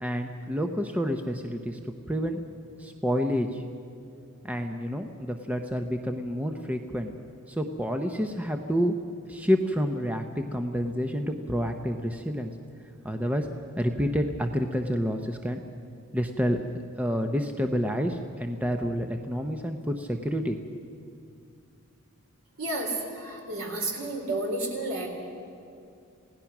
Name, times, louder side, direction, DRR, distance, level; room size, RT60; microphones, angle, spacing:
voice 1, 0.0-1.8 2.1-2.4 2.8-3.6 4.4-7.1 7.5-8.9 9.3-12.5 13.0-13.5 13.8-15.6 16.1-16.6 17.0-20.8, equal, 5° right, 5 dB, 0.7 m, -28 dB
voice 2, 22.6-25.1, right 2 dB, 70° right, 1 dB, 3.9 m, -31 dB
27.5 x 17.5 x 6.0 m, 2.5 s
head